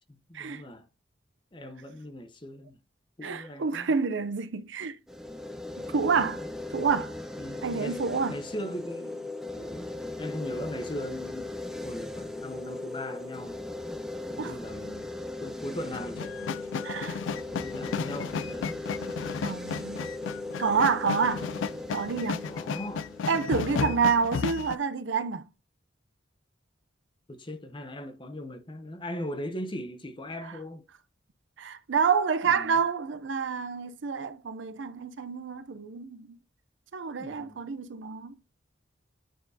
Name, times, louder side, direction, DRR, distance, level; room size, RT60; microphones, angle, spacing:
voice 1, 0.3-0.9 1.5-2.8 3.2-3.9 7.4-8.0 8.3-9.3 9.6-11.6 11.8-13.6 14.3-15.1 15.4-16.6 17.5-18.8 20.6-20.8 22.5-24.0 27.3-30.8 32.4-32.8 37.2-37.7, left 1 dB, 25° left, 0.8 m, -39 dB
voice 2, 3.2-5.0 5.9-6.4 6.7-7.1 7.6-8.4 14.4-14.5 16.8-17.2 19.4-20.1 20.6-21.5 21.9-22.4 23.3-25.4 30.4-30.5 31.6-36.4 36.9-38.3, right 5 dB, 75° right, 0.5 m, -28 dB
sound 1, 5.1-24.1, left 2 dB, ahead, 0.6 m, -38 dB
sound 2, 15.9-24.8, left 6 dB, 80° left, 0.3 m, -34 dB
9.1 x 4.4 x 2.7 m
head